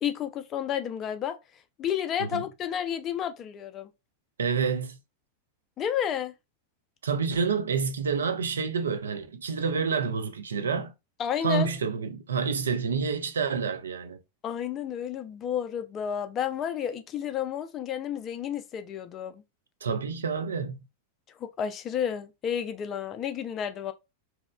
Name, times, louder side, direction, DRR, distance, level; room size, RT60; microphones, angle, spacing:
voice 1, 0.0-1.4 1.8-3.9 5.8-6.3 11.2-11.7 14.4-19.4 21.4-23.9, left 9 dB, 30° left, 0.3 m, -31 dB
voice 2, 4.4-5.0 7.0-10.9 11.4-14.2 19.8-20.8, right 5 dB, 70° right, 0.3 m, -28 dB
2.8 x 2.0 x 2.2 m
figure-of-eight pair, 90°, 0 cm